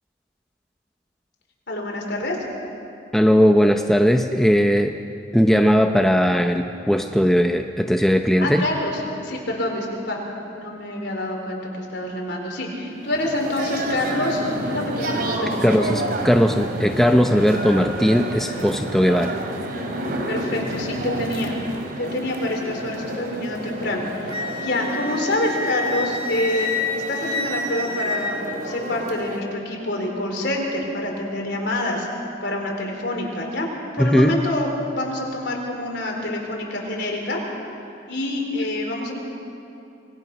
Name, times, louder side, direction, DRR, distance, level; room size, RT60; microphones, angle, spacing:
voice 1, 1.7-2.4 8.4-10.2 10.5-15.9 20.3-21.5 22.0-32.1 32.4-33.7 33.9-37.4 38.1-39.1, left 1 dB, 55° left, 0 dB, 4.3 m, -27 dB
voice 2, 3.1-4.9 5.3-8.6 15.6-19.4 34.0-34.4, equal, ahead, 4 dB, 0.6 m, -18 dB
sound 1, 12.9-29.4, right 1 dB, 50° right, 2.8 m, -30 dB
Wind instrument woodwind instrument, 24.3-28.9, left 2 dB, 25° right, 1.7 m, -29 dB
26.5 x 19.5 x 6.2 m, 2.9 s
head